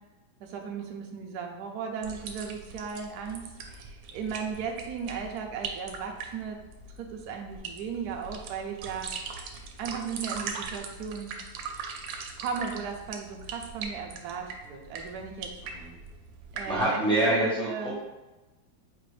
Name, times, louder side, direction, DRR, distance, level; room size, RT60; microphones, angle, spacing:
voice 1, 0.4-6.6 7.0-9.1 9.8-11.4 12.4-15.5 16.5-18.0, right 6 dB, 70° right, 2 dB, 1.0 m, -36 dB
sound 1, 2.0-16.8, right 5 dB, 90° right, 1.3 m, -40 dB
voice 2, 15.6-15.9 16.6-18.0, right 1 dB, 5° left, -8 dB, 0.8 m, -26 dB
4.7 x 2.5 x 3.2 m, 1.1 s
omnidirectional pair, 2.0 m